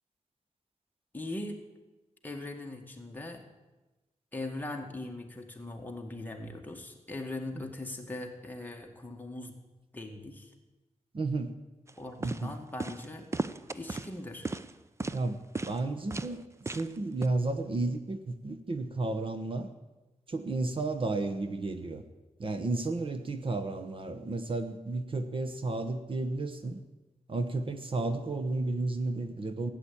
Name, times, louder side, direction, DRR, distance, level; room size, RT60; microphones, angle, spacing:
voice 1, 1.1-1.6 2.2-3.4 4.3-9.5 9.9-10.5 12.0-13.3 13.7-14.5, left 2 dB, 15° left, 1 dB, 1.9 m, -40 dB
voice 2, 11.1-11.5 12.2-12.5 15.1-16.4 16.7-19.7 20.3-22.0 22.4-26.8 27.3-29.7, right 2 dB, 45° right, 7 dB, 1.1 m, -32 dB
sound 1, 11.9-12.0 12.2-12.4 12.8-13.0 13.3-14.1 14.4-14.7 15.0-15.2 15.5-15.8 16.1-16.3 16.7-16.9 17.2-17.3, right 3 dB, 20° right, 0.6 m, -35 dB
16.0 x 9.6 x 8.6 m, 1.1 s
wide cardioid pair, 165°, 13 cm